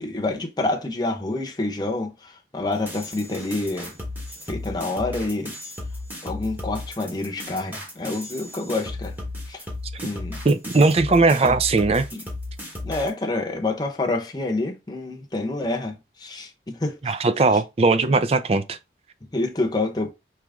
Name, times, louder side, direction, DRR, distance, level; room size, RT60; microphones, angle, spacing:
voice 1, 0.0-3.9 4.5-5.5 6.2-9.2 9.5-9.6 10.0-10.4 10.7-10.9 11.4-11.6 12.1-12.3 12.8-17.2 19.3-20.1, left 2 dB, 25° left, 0.8 m, -28 dB
sound 1, 2.7-13.1, left 2 dB, 10° right, 1.2 m, -35 dB
voice 2, 10.4-12.1 17.0-18.8, right 3 dB, 35° right, 0.4 m, -19 dB
4.8 x 3.0 x 3.6 m
head